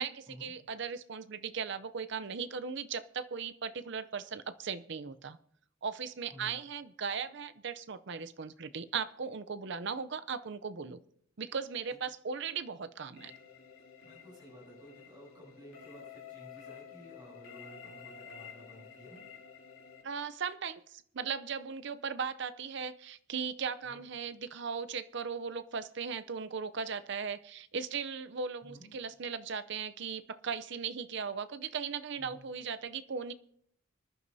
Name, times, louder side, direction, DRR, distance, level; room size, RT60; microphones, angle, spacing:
voice 1, 0.0-5.4 5.8-11.0 11.4-13.3 20.0-33.3, right 6 dB, 55° right, 12 dB, 0.5 m, -38 dB
sound 1, 13.2-20.0, left 7 dB, 80° left, 2.8 m, -51 dB
voice 2, 14.0-19.2 23.9-24.0 28.6-28.9 32.2-32.5, equal, 20° right, -4 dB, 7.4 m, -53 dB
25.5 x 11.0 x 2.7 m, 0.68 s
head